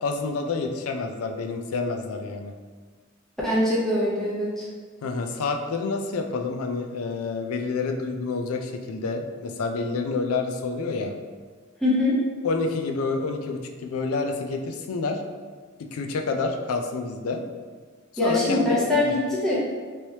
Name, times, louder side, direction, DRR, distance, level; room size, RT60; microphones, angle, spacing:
voice 1, 0.0-2.5 5.0-11.1 12.4-15.2 15.9-17.4 18.2-18.9, left 4 dB, 85° left, 4 dB, 0.4 m, -28 dB
voice 2, 3.4-4.7 11.8-12.2 18.2-19.6, left 1 dB, ahead, -8 dB, 0.8 m, -23 dB
3.1 x 3.0 x 2.8 m, 1.5 s
head